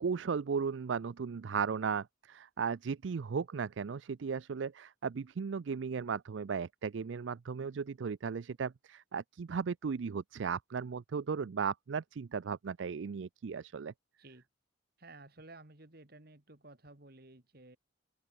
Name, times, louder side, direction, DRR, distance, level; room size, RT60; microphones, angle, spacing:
voice 1, 0.0-13.9, right 6 dB, 70° right, 0.4 m, -36 dB
voice 2, 15.0-17.8, right 2 dB, 50° right, 2.2 m, -54 dB
open air
head